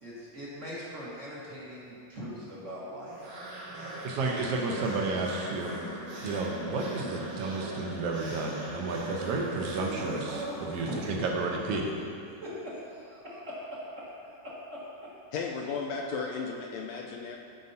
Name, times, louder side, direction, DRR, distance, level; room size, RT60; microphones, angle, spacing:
voice 1, 0.0-3.1 10.8-11.0 12.4-14.8, equal, 50° right, -9 dB, 0.9 m, -41 dB
sound 1, 3.1-11.5, right 1 dB, 90° right, 3.7 m, -39 dB
voice 2, 4.0-5.8 6.2-11.8, right 3 dB, 70° right, 0 dB, 1.4 m, -32 dB
voice 3, 15.3-17.4, left 5 dB, 85° left, 0 dB, 1.6 m, -34 dB
14.5 x 5.5 x 2.7 m, 2.6 s
omnidirectional pair, 3.7 m